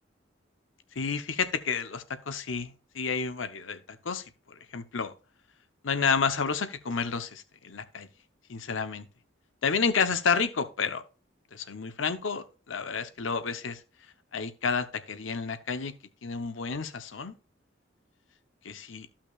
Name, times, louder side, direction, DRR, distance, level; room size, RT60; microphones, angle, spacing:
voice 1, 1.0-3.8 4.0-4.2 4.7-5.1 5.8-8.1 8.5-9.1 9.6-11.0 11.5-13.8 14.3-15.9 16.2-17.3 18.6-19.1, left 5 dB, 85° left, 10 dB, 0.8 m, -30 dB
14.0 x 5.8 x 2.4 m, 0.34 s
head